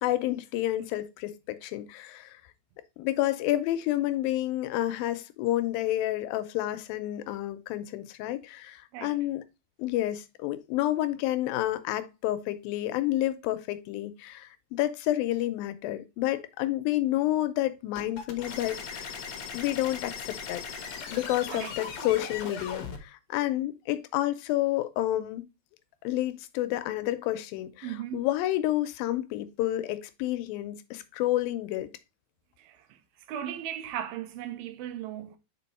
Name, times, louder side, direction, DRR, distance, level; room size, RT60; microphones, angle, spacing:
voice 1, 0.0-2.4 3.0-9.4 9.8-19.2 19.5-20.6 21.1-25.5 26.0-31.9, left 14 dB, 85° left, 2.4 m, -29 dB
sound 1, 18.0-23.0, left 6 dB, 65° left, 1.8 m, -38 dB
voice 2, 27.8-28.3 32.6-33.0 33.3-35.4, right 10 dB, 90° right, 2.7 m, -37 dB
5.2 x 5.1 x 4.1 m
omnidirectional pair, 4.1 m